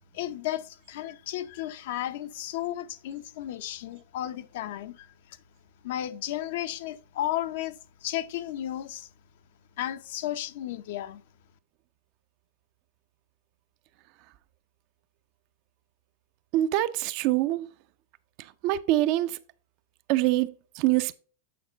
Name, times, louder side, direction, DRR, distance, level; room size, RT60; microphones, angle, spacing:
voice 1, 0.1-5.4 5.8-9.1 9.8-11.2, left 13 dB, 65° left, 0.7 m, -34 dB
voice 2, 16.5-17.7 18.6-19.4 20.1-21.1, right 15 dB, 45° right, 0.5 m, -25 dB
8.6 x 4.4 x 3.9 m
supercardioid pair, 135°, 0 cm